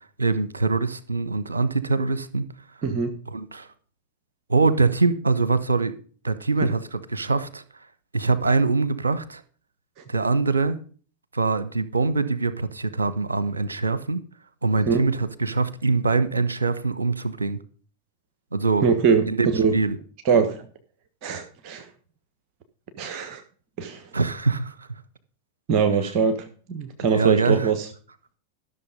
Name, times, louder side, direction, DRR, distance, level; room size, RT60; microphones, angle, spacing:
voice 1, 0.2-2.5 3.3-3.7 4.5-5.9 6.2-7.6 8.1-9.4 10.1-10.8 11.3-14.2 14.6-17.6 18.5-18.9 19.3-19.5 19.7-20.0 20.3-20.4 24.1-24.9 27.1-27.7, right 3 dB, 75° right, 1.0 m, -23 dB
voice 2, 2.8-3.1 14.9-15.0 18.8-19.3 19.5-19.7 20.2-20.7 21.2-21.9 23.0-23.4 23.8-24.0 25.7-27.9, right 6 dB, 40° right, 1.5 m, -22 dB
14.0 x 6.8 x 5.2 m
figure-of-eight pair, 90°, 0 cm